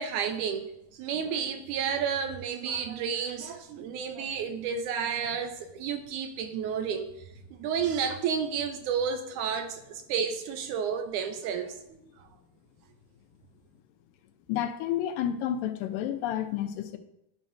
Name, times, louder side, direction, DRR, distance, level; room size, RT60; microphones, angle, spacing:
voice 1, 0.0-7.1 7.5-12.0, right 7 dB, 80° right, 7 dB, 1.9 m, -31 dB
voice 2, 14.5-17.0, left 10 dB, 90° left, 8 dB, 2.3 m, -30 dB
12.0 x 5.2 x 2.6 m, 0.82 s
omnidirectional pair, 3.8 m